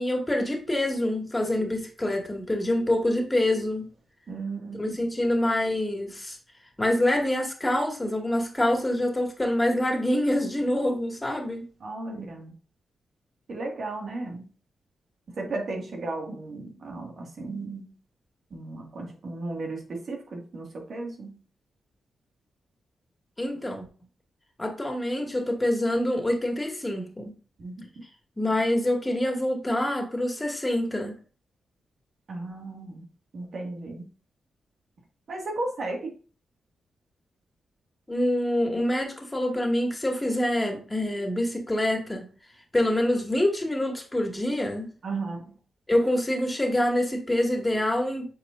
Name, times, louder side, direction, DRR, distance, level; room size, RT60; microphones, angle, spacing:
voice 1, 0.0-3.9 4.7-6.4 6.8-11.7 23.4-23.9 24.6-27.3 28.4-31.2 38.1-42.2 42.7-44.9 45.9-48.3, left 1 dB, 20° left, 2 dB, 2.2 m, -26 dB
voice 2, 4.3-4.9 11.8-12.5 13.5-14.5 15.4-17.9 18.5-21.4 27.6-27.8 32.3-33.1 33.3-34.1 35.3-36.1 45.0-45.5, right 2 dB, 60° right, 1 dB, 2.1 m, -35 dB
8.5 x 4.8 x 2.6 m, 0.37 s
supercardioid pair, 40°, 0 cm